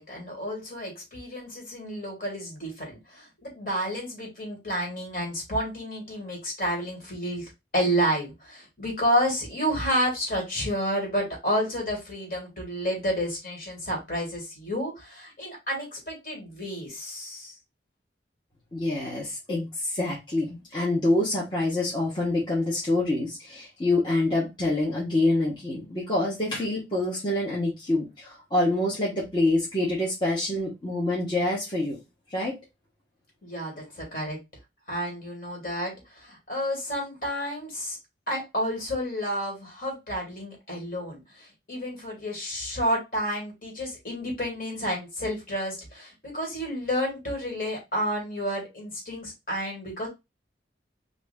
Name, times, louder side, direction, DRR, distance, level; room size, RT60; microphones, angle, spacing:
voice 1, 0.0-17.5 33.4-34.4 34.9-38.0 38.3-50.1, equal, 50° left, -1 dB, 2.0 m, -30 dB
voice 2, 18.7-32.0 32.3-32.6, left 2 dB, 25° left, -6 dB, 1.1 m, -26 dB
3.4 x 2.6 x 3.5 m, 0.23 s
head